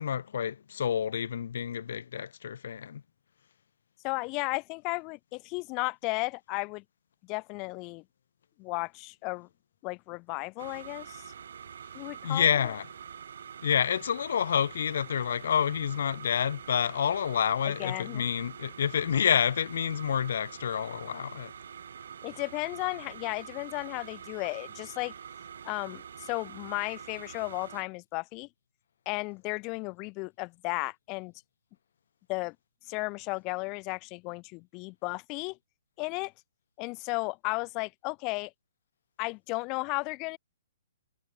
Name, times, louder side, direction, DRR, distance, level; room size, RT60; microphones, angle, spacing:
voice 1, 0.0-3.0 12.2-12.9 13.6-21.5, left 8 dB, 65° left, 1.1 m, -28 dB
voice 2, 4.0-6.8 7.3-8.0 8.6-9.5 9.8-11.2 11.9-12.7 17.7-18.2 22.2-25.1 25.6-28.5 29.1-31.3 32.3-32.6 32.9-35.6 36.0-36.3 36.8-38.5 39.2-40.4, left 28 dB, 25° left, 2.2 m, -34 dB
sound 1, 10.6-27.8, right 7 dB, 65° right, 7.2 m, -46 dB
hypercardioid pair, 150°, 0 cm